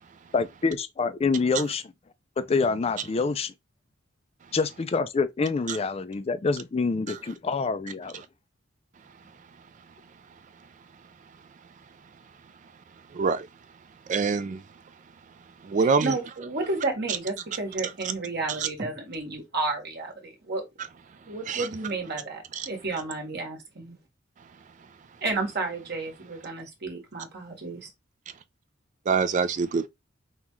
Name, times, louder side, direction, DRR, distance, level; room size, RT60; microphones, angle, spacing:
voice 1, 0.3-1.8 2.4-3.5 4.5-8.2, left 4 dB, 30° left, 0.4 m, -26 dB
voice 2, 13.1-13.5 14.1-14.6 15.6-16.1 18.6-18.7 21.5-21.7 22.5-22.7 29.1-29.9, right 5 dB, 40° right, 0.3 m, -25 dB
voice 3, 15.8-20.6 21.3-24.0 25.2-27.9, right 3 dB, 55° right, 1.5 m, -32 dB
5.4 x 2.4 x 3.0 m
head